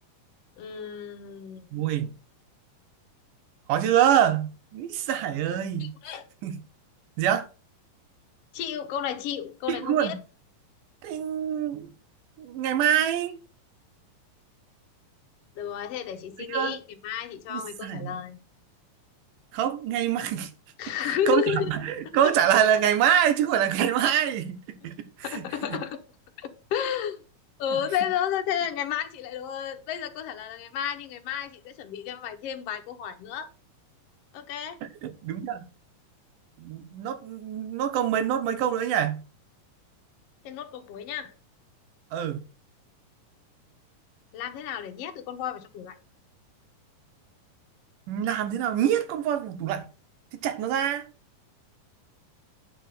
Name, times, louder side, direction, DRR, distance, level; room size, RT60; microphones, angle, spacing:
voice 1, 0.6-1.7 5.8-6.2 8.5-10.2 15.6-18.4 20.8-21.7 25.2-26.0 26.4-27.2 27.6-33.5 34.3-34.8 40.4-41.3 44.3-46.0, left 9 dB, 65° left, 1.7 m, -32 dB
voice 2, 1.7-2.1 3.7-5.9 6.4-6.5 7.2-7.5 9.7-10.1 11.0-11.9 12.4-13.4 16.5-16.8 17.5-18.2 19.5-20.5 21.1-24.6 24.8-25.0 25.3-25.4 25.7-25.8 27.7-27.8 35.0-35.7 36.6-39.2 42.1-42.4 48.1-49.9 50.4-51.0, right 9 dB, 75° right, 2.5 m, -25 dB
9.4 x 3.7 x 6.5 m
omnidirectional pair, 3.9 m